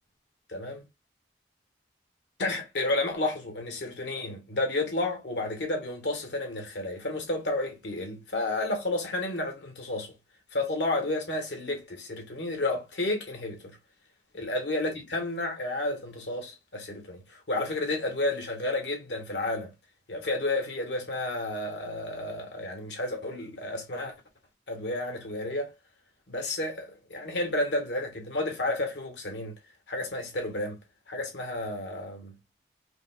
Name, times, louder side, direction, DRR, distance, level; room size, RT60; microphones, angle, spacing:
voice 1, 0.5-0.8 2.4-10.1 10.5-13.8 14.3-19.7 20.1-24.1 24.7-25.7 26.3-29.5 29.9-30.8 31.1-32.3, left 2 dB, 85° left, 1.4 m, -31 dB
5.1 x 2.3 x 2.4 m
head